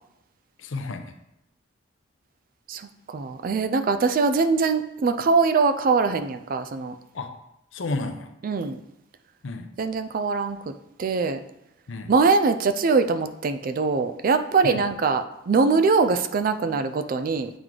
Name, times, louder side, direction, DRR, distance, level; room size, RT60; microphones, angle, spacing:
voice 1, 0.6-1.1 7.1-7.3 7.7-8.3 9.4-9.7 11.9-12.1 14.6-14.8, left 3 dB, 90° left, 7 dB, 0.6 m, -32 dB
voice 2, 2.7-7.0 8.4-8.8 9.8-10.6 11.0-11.4 12.1-17.5, right 4 dB, 45° right, 9 dB, 0.4 m, -22 dB
8.8 x 3.1 x 3.7 m, 0.84 s
head